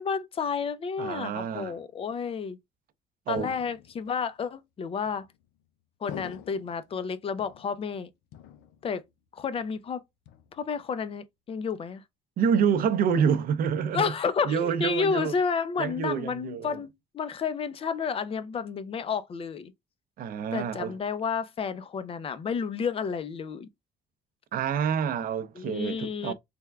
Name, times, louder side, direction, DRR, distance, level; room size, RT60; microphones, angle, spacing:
voice 1, 0.0-2.6 3.3-5.2 6.0-8.1 8.8-9.0 9.3-10.0 10.5-12.0 13.9-19.7 20.5-23.7 25.6-26.3, left 6 dB, 35° left, 0.5 m, -31 dB
voice 2, 1.0-1.8 3.3-3.5 12.4-14.1 14.4-15.3 15.8-16.8 20.2-21.0 24.5-26.3, right 7 dB, 60° right, 0.6 m, -27 dB
sound 1, 3.4-4.2 5.1-5.6 6.1-6.9 7.4-8.0 8.3-9.1 9.4-9.8 10.3-10.9, left 10 dB, 90° left, 0.5 m, -46 dB
3.4 x 2.2 x 3.4 m
cardioid pair, 110°, 17 cm